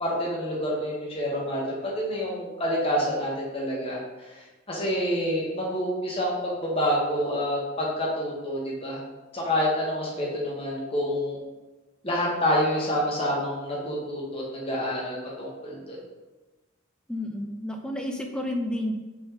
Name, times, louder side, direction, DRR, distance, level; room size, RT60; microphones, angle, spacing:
voice 1, 0.0-9.0 9.3-11.4 12.0-16.0, equal, 30° left, -4 dB, 1.1 m, -28 dB
voice 2, 17.1-18.9, left 1 dB, 5° left, 3 dB, 0.3 m, -30 dB
3.9 x 3.5 x 2.9 m, 1.2 s
head